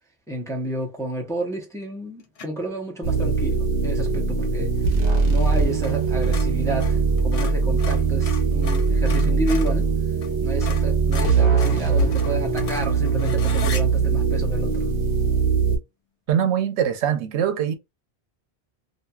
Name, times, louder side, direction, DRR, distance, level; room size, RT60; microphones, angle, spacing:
voice 1, 0.3-9.9 10.4-14.9, right 1 dB, 5° left, 0.6 m, -31 dB
sound 1, 2.4-2.7 5.8-6.0 6.2-9.8 10.2-10.3 10.6-13.8, left 6 dB, 50° left, 0.4 m, -36 dB
sound 2, 3.0-15.8, right 5 dB, 55° right, 1.0 m, -21 dB
voice 2, 16.3-17.7, right 9 dB, 85° right, 0.9 m, -22 dB
2.8 x 2.7 x 2.3 m
omnidirectional pair, 1.1 m